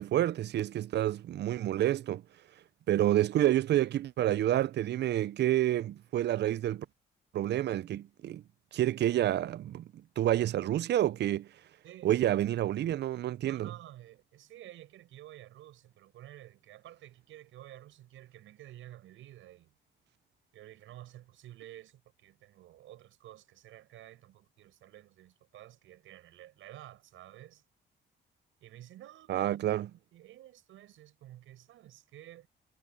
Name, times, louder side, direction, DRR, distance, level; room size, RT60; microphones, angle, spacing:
voice 1, 0.0-2.2 2.9-6.9 7.3-8.4 8.7-9.9 10.2-11.5 12.0-13.7 29.3-29.9, right 12 dB, 60° right, 0.5 m, -28 dB
voice 2, 11.8-12.4 13.5-19.8 20.5-27.6 28.6-29.6 29.8-32.5, right 13 dB, 85° right, 6.5 m, -51 dB
cardioid pair, 90°, 20 cm